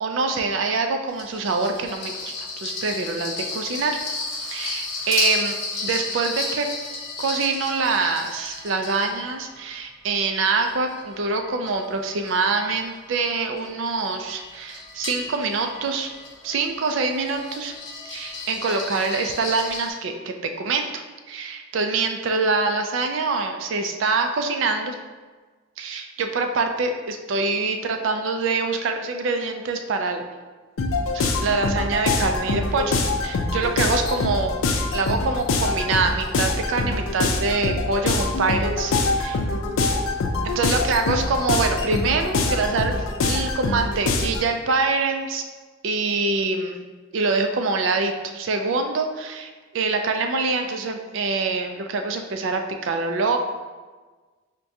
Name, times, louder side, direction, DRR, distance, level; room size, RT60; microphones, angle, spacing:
voice 1, 0.0-4.0 4.5-5.6 5.8-6.7 7.2-16.1 16.4-17.7 18.1-21.0 21.3-25.0 25.8-30.2 31.1-32.9 33.2-34.6 34.9-39.4 40.4-45.4 45.8-46.8 47.1-53.4, right 4 dB, 70° right, 5 dB, 0.4 m, -25 dB
sound 1, 1.1-9.6 10.1-19.9, left 3 dB, 70° left, 0.8 m, -33 dB
sound 2, 30.8-44.5, left 3 dB, 85° left, 0.4 m, -24 dB
5.7 x 2.2 x 2.6 m, 1.4 s
head